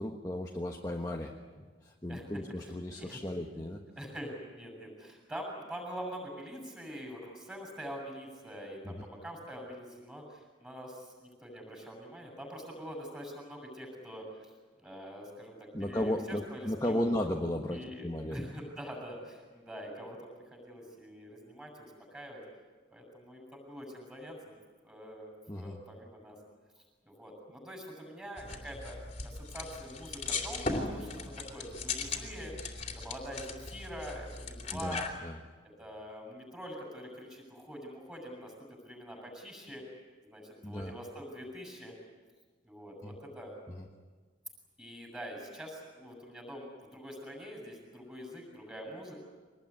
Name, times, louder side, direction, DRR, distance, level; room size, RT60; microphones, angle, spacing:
voice 1, 0.0-3.8 8.8-9.0 15.7-18.5 25.5-25.8 34.7-35.4 40.6-40.9 43.0-43.1 43.7-43.8, left 1 dB, 20° left, 1 dB, 1.3 m, -35 dB
voice 2, 2.6-3.2 4.0-14.5 14.8-17.1 17.7-22.4 22.9-24.6 24.8-26.4 26.8-32.5 33.0-35.1 35.8-39.8 40.2-41.9 42.6-43.5 44.8-49.2, equal, 5° right, 1 dB, 7.1 m, -45 dB
sound 1, 28.4-35.2, left 3 dB, 35° left, 3.1 m, -38 dB
24.5 x 20.0 x 9.8 m, 1.4 s
head